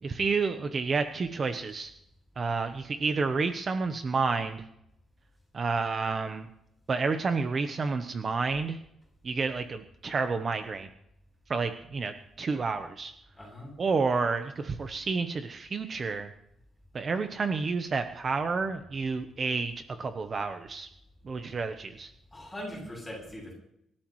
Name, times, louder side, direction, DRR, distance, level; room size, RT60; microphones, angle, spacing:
voice 1, 0.0-1.9 2.4-4.6 5.5-6.5 6.9-8.8 9.2-10.9 11.5-13.1 13.8-16.3 16.9-20.9 21.2-22.1, right 4 dB, 30° right, 8 dB, 0.9 m, -30 dB
voice 2, 13.4-13.7 22.3-23.5, equal, 10° left, -2 dB, 7.8 m, -40 dB
25.5 x 13.0 x 3.2 m, 0.76 s
cardioid pair, 160°, 0 cm